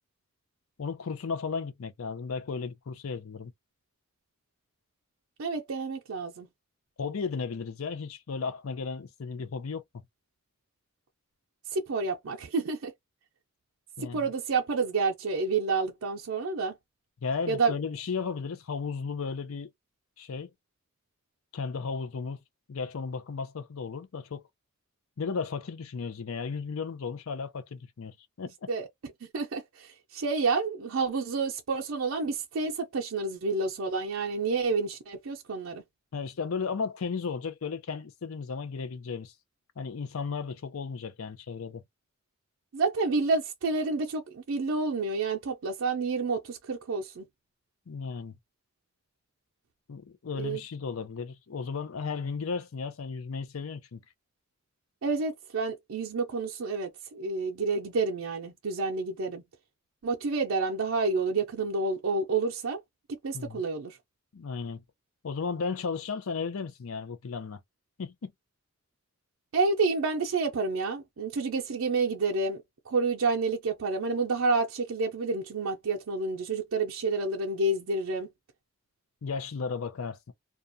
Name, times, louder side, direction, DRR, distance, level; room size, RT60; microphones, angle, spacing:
voice 1, 0.8-3.5 7.0-9.8 14.0-14.2 17.2-19.7 20.2-20.5 21.5-22.4 22.7-24.4 25.2-28.7 36.1-39.3 39.8-41.8 47.9-48.4 49.9-54.0 63.3-63.6 64.3-64.8 65.2-67.6 68.0-68.3 79.2-80.3, left 5 dB, 85° left, 0.5 m, -34 dB
voice 2, 5.4-6.5 11.7-12.9 14.1-16.7 17.5-17.7 28.7-28.9 29.3-35.8 42.7-47.3 50.4-50.6 55.0-59.4 60.0-62.8 63.2-64.0 69.5-78.3, right 3 dB, 85° right, 0.5 m, -29 dB
2.4 x 2.2 x 2.5 m
head